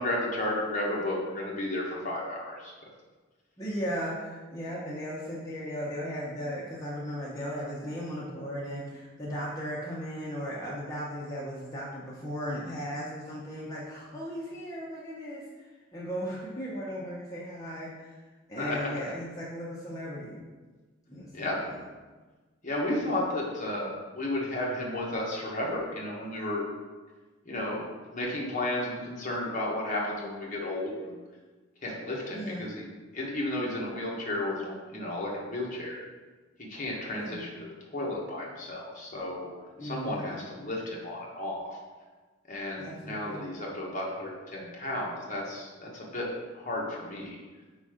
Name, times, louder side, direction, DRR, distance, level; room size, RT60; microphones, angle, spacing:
voice 1, 0.0-2.7 18.6-18.9 21.3-21.6 22.6-26.6 27.4-27.8 28.1-31.2 31.8-32.8 33.1-36.0 36.7-39.5 39.8-41.8 42.5-46.3 46.5-47.4, left 1 dB, 40° left, -3 dB, 1.1 m, -33 dB
voice 2, 3.6-18.2 18.5-20.5 21.1-21.8 23.0-23.1 32.3-32.7 37.1-37.4 39.8-40.4 42.8-43.5, equal, 15° left, -7 dB, 0.8 m, -37 dB
4.8 x 4.0 x 4.9 m, 1.3 s
head